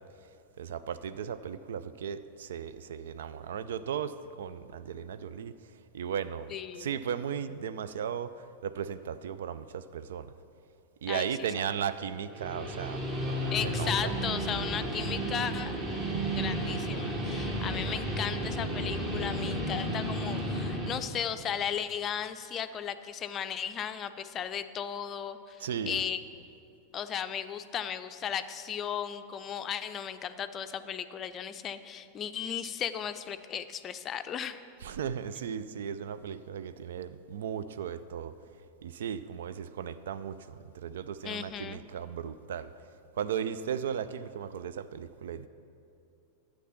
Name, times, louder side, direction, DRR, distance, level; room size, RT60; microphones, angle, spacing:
voice 1, 0.6-10.3 11.0-14.1 25.6-26.0 34.8-38.3 38.8-42.7 43.1-45.5, right 8 dB, 60° right, 13 dB, 0.4 m, -36 dB
voice 2, 6.5-6.9 11.1-11.3 11.6-11.7 13.5-15.7 16.3-26.4 26.9-34.6 41.2-41.8, left 8 dB, 30° left, 10 dB, 0.5 m, -36 dB
Guitar, 12.2-20.9, right 1 dB, 30° right, 2.0 m, -33 dB
11.5 x 8.3 x 5.8 m, 2.6 s
figure-of-eight pair, 90°, 0 cm